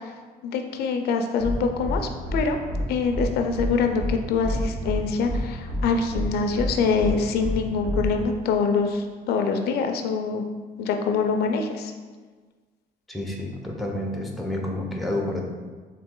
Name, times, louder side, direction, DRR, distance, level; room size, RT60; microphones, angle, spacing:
voice 1, 0.4-2.6 2.9-10.4 10.8-11.9, left 5 dB, 70° left, 5 dB, 0.4 m, -25 dB
sound 1, 1.4-1.5 1.8-2.0 2.2-2.4 2.7-2.8 3.1-3.2 3.5-3.7 4.0-4.1 4.4-5.0 5.2-5.4 5.7-5.8 6.1-6.2 6.5-6.7 7.0-7.1 7.4-7.5 7.8-8.1, equal, 65° right, 1.1 m, -28 dB
voice 2, 13.1-15.4, left 1 dB, ahead, 0 dB, 0.6 m, -29 dB
3.9 x 2.8 x 3.6 m, 1.4 s
cardioid pair, 110°, 17 cm